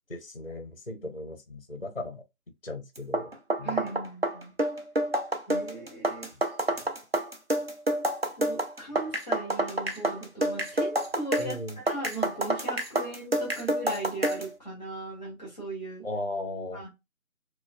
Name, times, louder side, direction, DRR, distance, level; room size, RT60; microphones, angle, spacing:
voice 1, 0.1-2.2 2.6-3.8 6.3-6.4 11.4-11.8 16.0-16.8, left 2 dB, 40° left, 0.5 m, -37 dB
sound 1, 3.0-14.5, right 1 dB, 45° right, 0.5 m, -28 dB
voice 2, 3.6-4.5 5.5-6.3 8.4-11.6 11.8-16.1 16.7-16.9, right 2 dB, 5° right, 1.6 m, -38 dB
4.2 x 2.3 x 2.2 m
figure-of-eight pair, 175°, 43 cm